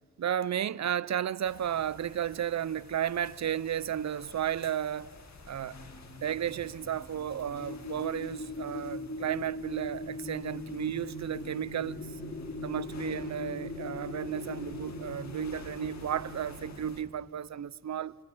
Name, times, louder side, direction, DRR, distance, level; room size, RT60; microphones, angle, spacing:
voice 1, 0.2-5.1 5.5-5.8 6.2-12.0 12.6-18.1, right 9 dB, 55° right, 0.6 m, -33 dB
sound 1, 1.4-17.0, left 4 dB, 55° left, 2.4 m, -52 dB
sound 2, 5.6-16.8, left 1 dB, 35° left, 3.4 m, -41 dB
26.0 x 25.5 x 8.8 m
cardioid pair, 80°, 34 cm